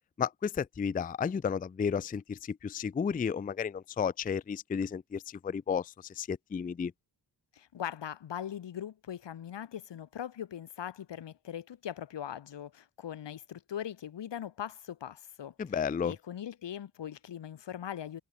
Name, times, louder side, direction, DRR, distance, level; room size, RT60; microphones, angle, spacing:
voice 1, 0.2-6.9 15.6-16.1, left 6 dB, 20° left, 0.3 m, -33 dB
voice 2, 7.5-15.5 16.0-18.2, left 10 dB, 85° left, 1.4 m, -40 dB
wide cardioid pair, 180°, 42 cm